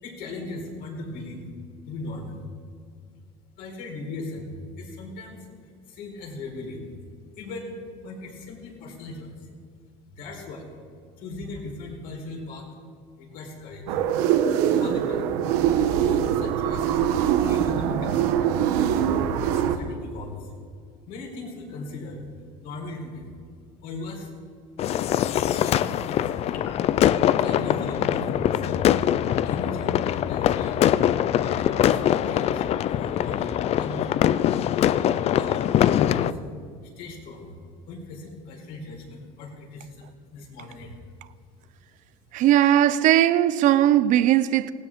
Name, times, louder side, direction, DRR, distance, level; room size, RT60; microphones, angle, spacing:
voice 1, 0.0-1.5 1.8-2.4 3.6-5.5 5.9-6.9 7.3-7.8 8.0-9.5 10.1-10.7 11.2-12.7 13.2-14.0 14.7-15.4 16.0-18.6 19.4-20.5 21.1-22.2 22.6-23.3 23.8-24.3 25.4-26.5 27.2-28.9 29.4-30.9 31.4-34.2 34.8-37.5 37.9-41.0, left 2 dB, 65° left, 4.4 m, -38 dB
sound 1, 13.9-19.8, right 9 dB, 80° right, 1.2 m, -23 dB
sound 2, 24.8-36.3, left 11 dB, 40° left, 0.4 m, -23 dB
sound 3, 26.5-33.1, left 4 dB, 85° left, 2.6 m, -40 dB
voice 2, 42.3-44.7, right 12 dB, 55° right, 0.6 m, -18 dB
19.5 x 16.5 x 3.7 m
supercardioid pair, 120°, 16 cm